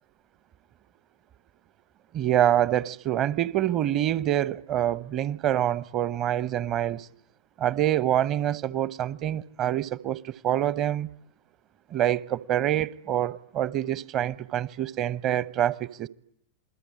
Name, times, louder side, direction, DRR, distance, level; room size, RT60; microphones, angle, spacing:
voice 1, 2.1-7.1 7.6-11.1 11.9-16.1, right 11 dB, 35° right, 1.0 m, -26 dB
28.0 x 21.0 x 9.8 m
figure-of-eight pair, 90°, 0 cm